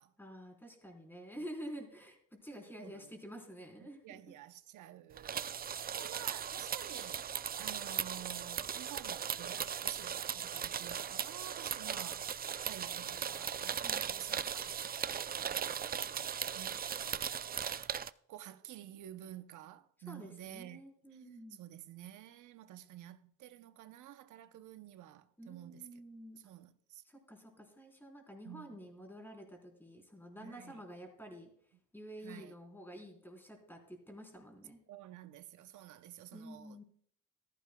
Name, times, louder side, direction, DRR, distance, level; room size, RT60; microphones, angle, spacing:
voice 1, 0.2-4.2 13.8-14.1 20.1-21.6 25.4-26.4 27.1-31.5 31.9-34.8 36.3-36.8, equal, 5° left, 3.8 m, -49 dB
voice 2, 3.8-7.3 7.6-14.8 15.4-20.8 21.6-25.9 26.4-27.0 28.4-28.8 30.4-30.8 32.2-32.5 34.9-36.8, right 12 dB, 75° right, 0.7 m, -51 dB
sound 1, 5.2-18.1, right 8 dB, 30° right, 0.4 m, -38 dB
14.5 x 14.0 x 2.3 m
cardioid pair, 90°, 30 cm